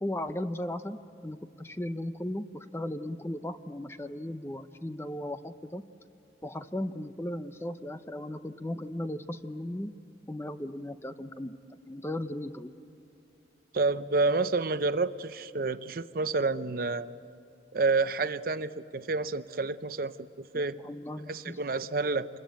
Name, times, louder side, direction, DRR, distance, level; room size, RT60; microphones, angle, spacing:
voice 1, 0.0-5.8 6.4-9.9 10.3-11.5 11.9-12.7 20.5-21.6, left 1 dB, 15° left, 10 dB, 0.6 m, -36 dB
voice 2, 13.7-17.1 17.7-20.8 21.3-22.3, right 3 dB, 50° right, 12 dB, 0.6 m, -29 dB
27.0 x 21.5 x 9.1 m, 2.5 s
head